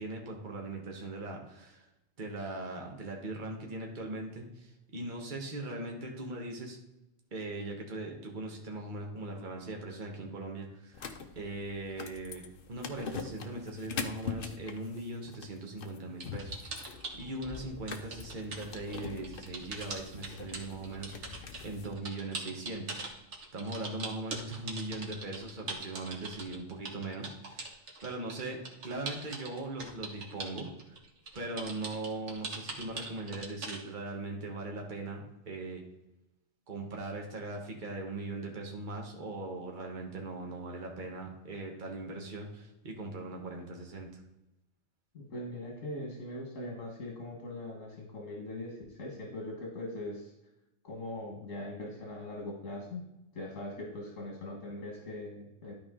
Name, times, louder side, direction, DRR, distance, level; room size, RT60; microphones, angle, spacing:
voice 1, 0.0-1.9 2.2-6.8 7.3-11.1 11.3-23.0 23.5-30.9 31.3-35.8 36.7-44.2, right 2 dB, 40° right, 1 dB, 1.5 m, -40 dB
sound 1, 10.9-21.9, left 5 dB, 50° left, 0.9 m, -43 dB
sound 2, 16.2-17.6 17.9-33.8, right 3 dB, 65° right, 1.7 m, -41 dB
voice 2, 45.1-50.3 50.8-53.0 53.3-55.7, left 1 dB, 80° left, -1 dB, 2.0 m, -41 dB
12.0 x 4.8 x 3.7 m, 0.92 s
omnidirectional pair, 1.3 m